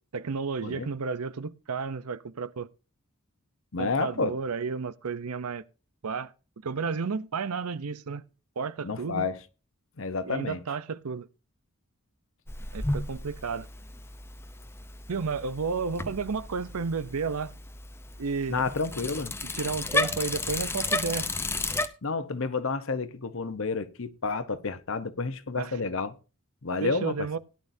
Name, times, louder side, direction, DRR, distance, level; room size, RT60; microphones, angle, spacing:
voice 1, 0.0-2.7 3.8-5.6 6.0-6.3 6.6-8.2 8.6-9.3 10.2-11.3 12.7-13.7 15.1-17.5 18.2-18.6 19.5-21.3 25.6-25.8 26.8-27.4, right 5 dB, 85° right, 0.7 m, -32 dB
voice 2, 3.7-4.3 8.8-9.4 10.0-10.6 18.5-19.3 22.0-26.1 26.6-27.3, left 4 dB, 60° left, 0.9 m, -30 dB
Bicycle, 12.5-21.9, left 2 dB, 10° left, 0.6 m, -33 dB
17.5 x 11.0 x 2.7 m
head